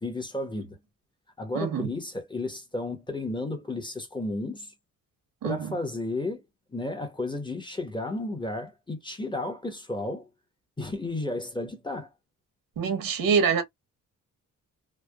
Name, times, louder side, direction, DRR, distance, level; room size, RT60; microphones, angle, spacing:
voice 1, 0.0-0.8 1.4-4.7 5.4-6.4 6.7-10.3 10.8-12.1, left 2 dB, 15° left, 1.0 m, -33 dB
voice 2, 1.5-1.9 5.4-5.7 12.8-13.6, right 6 dB, 90° right, 1.0 m, -25 dB
3.3 x 2.2 x 2.2 m
cardioid pair, 100°, 33 cm